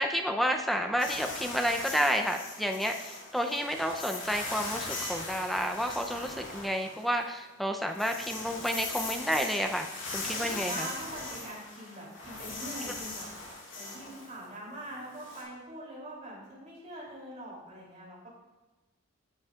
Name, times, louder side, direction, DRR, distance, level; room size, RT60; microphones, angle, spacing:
voice 1, 0.0-9.9 10.1-10.9, equal, ahead, 4 dB, 0.5 m, -30 dB
sound 1, 1.0-7.4 7.7-15.4, left 3 dB, 65° left, 2.5 m, -40 dB
voice 2, 10.2-13.3 13.7-18.3, right 1 dB, 35° right, -4 dB, 3.1 m, -43 dB
13.0 x 7.1 x 2.4 m, 1.2 s
head